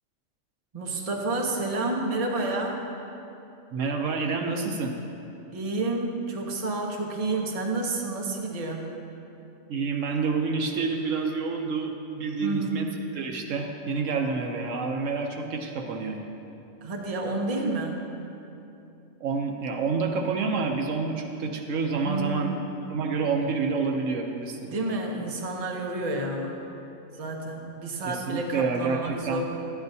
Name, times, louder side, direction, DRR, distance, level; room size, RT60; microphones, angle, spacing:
voice 1, 0.7-2.8 5.5-9.0 12.4-12.8 16.8-18.1 22.0-22.6 24.7-26.6 27.2-29.5, right 2 dB, 35° right, 0 dB, 0.8 m, -30 dB
voice 2, 3.7-4.9 9.7-12.9 13.1-16.2 19.2-22.5 22.9-24.7 28.1-29.4, right 4 dB, 75° right, 3 dB, 1.0 m, -28 dB
11.5 x 9.2 x 2.7 m, 2.8 s
omnidirectional pair, 1.4 m